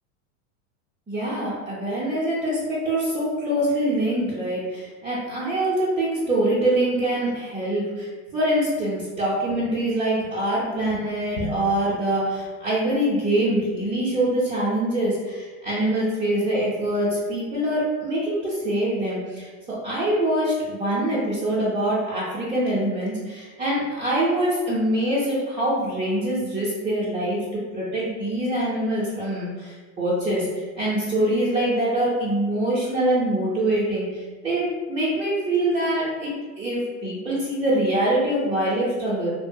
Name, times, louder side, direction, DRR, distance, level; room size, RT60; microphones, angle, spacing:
voice 1, 1.1-36.3 36.6-39.3, right 1 dB, 15° right, -10 dB, 0.4 m, -24 dB
2.7 x 2.7 x 2.2 m, 1.4 s
supercardioid pair, 125°, 41 cm